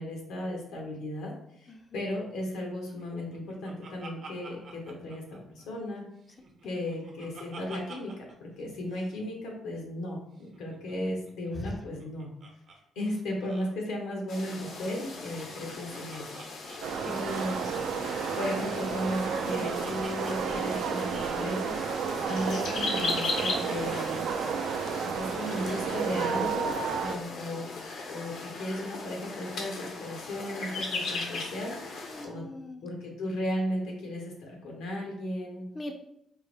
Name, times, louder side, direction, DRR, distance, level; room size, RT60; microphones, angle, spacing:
voice 1, 0.0-1.3 1.6-5.2 5.5-6.0 6.6-8.1 8.4-12.3 12.9-16.2 17.0-17.6 18.3-24.2 25.0-27.7 28.1-32.4 32.8-35.6, left 1 dB, 90° left, 0 dB, 1.0 m, -35 dB
voice 2, 1.7-2.0 6.3-6.4 6.6-6.8 11.5-11.8 16.6-17.1 27.3-27.4 32.1-32.8 35.7-35.9, left 2 dB, 25° left, 4 dB, 0.4 m, -41 dB
Laughter, 3.0-5.9 6.2-8.3 8.6-8.7 8.9-9.1 10.4-12.8 13.0-13.1 13.4-13.7 14.9-17.7 18.7-21.5, right 3 dB, 60° right, 0.7 m, -49 dB
sound 1, 14.3-32.3, left 3 dB, 75° left, 0.7 m, -38 dB
sound 2, 16.8-27.1, right 6 dB, 80° right, 0.4 m, -32 dB
4.5 x 2.1 x 3.3 m, 0.74 s
cardioid pair, 90°, 0 cm